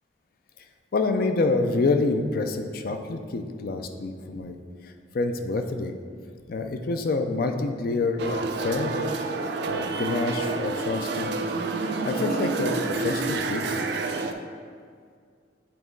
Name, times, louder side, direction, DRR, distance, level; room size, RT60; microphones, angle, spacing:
voice 1, 0.9-4.6 5.1-5.9 6.5-9.1 9.7-11.4 12.0-13.8, left 3 dB, 55° left, 6 dB, 0.4 m, -27 dB
sound 1, 8.2-14.3, right 3 dB, 65° right, 0.4 m, -28 dB
8.5 x 3.0 x 3.8 m, 2.1 s
head